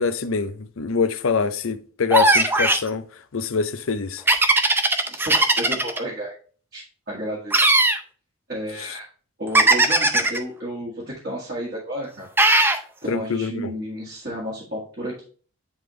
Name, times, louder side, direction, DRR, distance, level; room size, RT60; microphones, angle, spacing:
voice 1, 0.0-3.0 3.3-4.2 13.1-13.7, left 5 dB, 80° left, 0.6 m, -24 dB
sound 1, 2.1-2.9 4.3-6.0 7.5-8.0 9.5-10.4 12.4-12.8, right 2 dB, 10° right, 0.4 m, -17 dB
voice 2, 4.9-6.3 6.7-7.6 8.5-9.0 9.4-10.9 11.2-12.3 12.6-15.2, equal, 45° right, 1.8 m, -32 dB
9.6 x 3.4 x 3.1 m
head